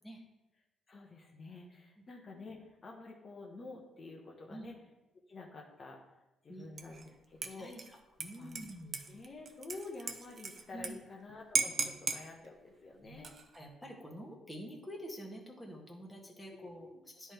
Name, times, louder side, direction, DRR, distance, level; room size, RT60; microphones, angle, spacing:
voice 1, 0.9-4.7 5.3-6.1 6.4-7.7 8.4-8.6 9.1-13.3 16.6-17.0, left 3 dB, 40° left, -1 dB, 1.1 m, -49 dB
Dishes pots and pans / Liquid, 6.8-7.1 7.4-10.9 11.2-11.3 11.6-12.2 13.1-13.6, right 4 dB, 45° right, 0.7 m, -37 dB
voice 2, 7.5-9.0 10.7-10.9 11.7-11.9 13.0-13.2 13.5-16.9 17.2-17.3, equal, 10° left, -1 dB, 1.5 m, -47 dB
10.0 x 3.6 x 4.4 m, 0.98 s
cardioid pair, 90°, 0 cm